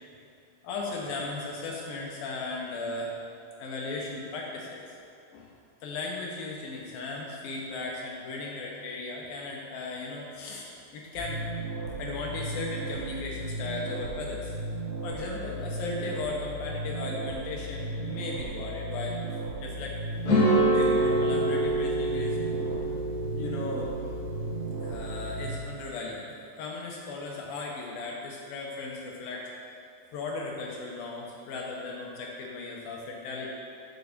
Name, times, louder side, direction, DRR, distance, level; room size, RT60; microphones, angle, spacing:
voice 1, 0.6-3.2 3.6-5.0 5.3-5.5 5.8-10.7 10.9-11.4 11.8-14.5 15.0-19.2 19.6-20.0 20.7-22.9 23.3-23.9 24.8-29.5 30.1-33.5, left 3 dB, 75° left, -2 dB, 2.2 m, -36 dB
sound 1, 11.1-25.6, right 2 dB, 55° right, 2.2 m, -36 dB
sound 2, 20.2-25.4, right 1 dB, 60° left, 3.5 m, -27 dB
7.0 x 6.3 x 6.5 m, 2.6 s
omnidirectional pair, 5.1 m